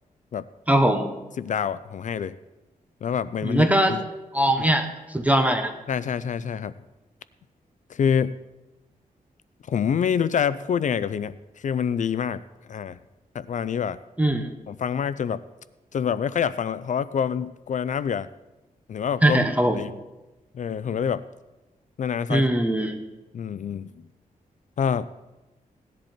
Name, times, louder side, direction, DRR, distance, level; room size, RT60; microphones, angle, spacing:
voice 1, 0.7-1.1 3.4-4.0 4.3-5.7 14.2-14.5 19.2-19.8 22.3-23.0, right 1 dB, 10° right, 6 dB, 1.0 m, -21 dB
voice 2, 1.4-2.4 3.0-4.0 5.9-6.7 7.9-8.3 9.7-12.4 12.7-13.0 13.3-14.0 14.7-15.4 15.9-18.3 18.9-19.4 19.7-19.9 20.5-21.2 22.0-22.5 23.3-24.1 24.8-25.0, left 7 dB, 60° left, 15 dB, 0.4 m, -26 dB
17.5 x 10.5 x 4.4 m, 1.0 s
wide cardioid pair, 140°, 15 cm